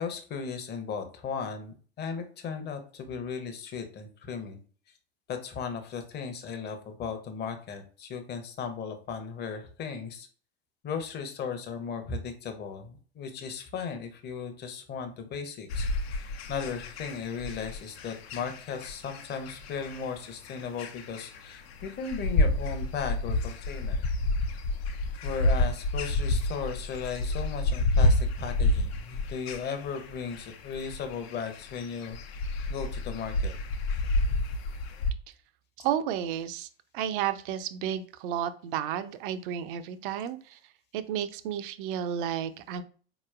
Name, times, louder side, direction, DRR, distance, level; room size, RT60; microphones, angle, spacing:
voice 1, 0.0-4.6 5.3-10.3 10.8-15.9 16.5-24.1 25.2-32.2 32.7-33.5, left 6 dB, 30° left, 7 dB, 0.8 m, -36 dB
sound 1, 15.7-35.1, left 2 dB, 65° left, 0.6 m, -29 dB
voice 2, 35.8-36.7 36.9-40.6 40.9-42.8, right 10 dB, 55° right, 12 dB, 0.5 m, -32 dB
4.2 x 3.0 x 2.4 m, 0.41 s
figure-of-eight pair, 75°, 33 cm